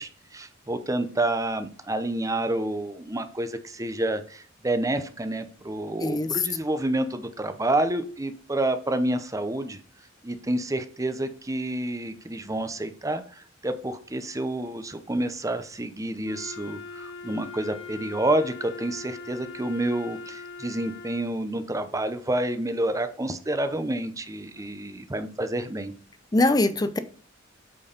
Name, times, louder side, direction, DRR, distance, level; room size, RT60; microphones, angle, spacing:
voice 1, 0.0-9.8 10.2-25.9, right 1 dB, 15° right, 9 dB, 0.8 m, -29 dB
voice 2, 6.0-6.4 26.3-27.0, left 2 dB, 20° left, 11 dB, 0.7 m, -22 dB
Wind instrument woodwind instrument, 16.2-21.4, left 4 dB, 80° left, 1.2 m, -41 dB
8.6 x 4.6 x 5.2 m, 0.44 s
head